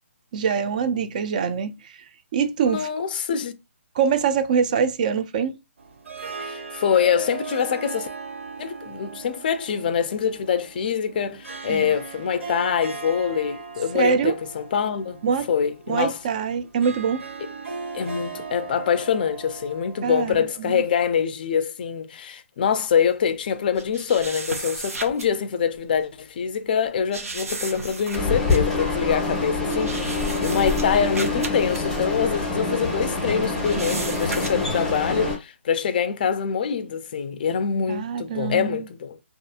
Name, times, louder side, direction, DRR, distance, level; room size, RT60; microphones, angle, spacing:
voice 1, 0.3-2.0 2.3-2.9 4.0-5.6 11.7-11.9 13.9-14.3 15.2-15.5 15.9-17.2 20.0-20.8 37.9-38.9, right 6 dB, 35° right, 0.3 m, -24 dB
voice 2, 2.6-3.5 6.4-8.1 8.6-15.2 15.5-16.2 17.9-39.2, left 7 dB, 40° left, 0.4 m, -25 dB
Harp, 5.8-21.0, right 5 dB, 70° right, 1.7 m, -38 dB
sound 1, 23.8-25.3 25.7-25.9 27.1-33.1 33.3-34.8, right 3 dB, 90° right, 0.8 m, -35 dB
sound 2, 28.1-35.4, left 3 dB, ahead, 0.7 m, -26 dB
2.6 x 2.4 x 2.4 m
hypercardioid pair, 160°, 8 cm